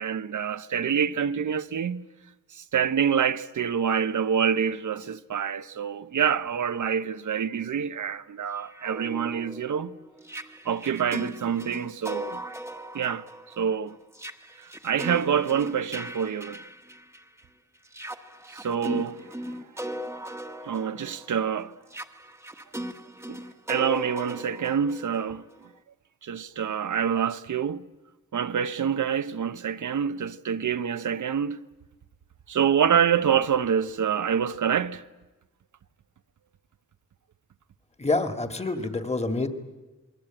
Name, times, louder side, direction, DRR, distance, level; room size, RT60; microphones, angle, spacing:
voice 1, 0.0-2.1 2.5-9.9 10.6-12.4 12.9-13.2 13.6-14.0 14.6-16.6 18.5-19.2 19.5-19.6 20.6-21.7 23.3-23.4 23.7-25.4 26.2-27.9 28.3-31.6 32.5-35.0, right 7 dB, 85° right, 0.9 m, -26 dB
sound 1, 8.6-17.4 17.9-25.7, equal, 10° right, 1.2 m, -38 dB
voice 2, 38.0-39.5, left 3 dB, 20° left, 1.9 m, -27 dB
27.5 x 21.5 x 8.9 m
wide cardioid pair, 150°, 30 cm